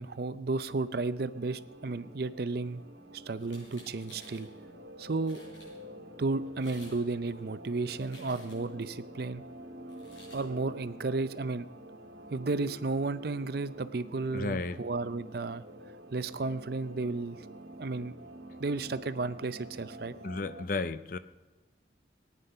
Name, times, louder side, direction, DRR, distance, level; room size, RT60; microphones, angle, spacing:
voice 1, 0.0-2.8 3.1-4.5 5.0-5.4 6.2-9.4 10.3-11.7 12.3-15.6 16.1-17.4 17.8-18.1 18.6-20.1, right 3 dB, 55° right, 14 dB, 0.5 m, -33 dB
sound 1, 0.7-20.6, right 1 dB, 70° right, 1.5 m, -49 dB
sound 2, 3.4-4.5 5.0-5.1 5.2-5.7 6.5-7.0 7.3-8.8 9.9-10.4, left 1 dB, 80° left, 6.5 m, -54 dB
voice 2, 14.3-14.8 20.2-21.2, left 3 dB, 45° left, 13 dB, 0.5 m, -33 dB
18.5 x 9.7 x 5.6 m, 1.2 s
head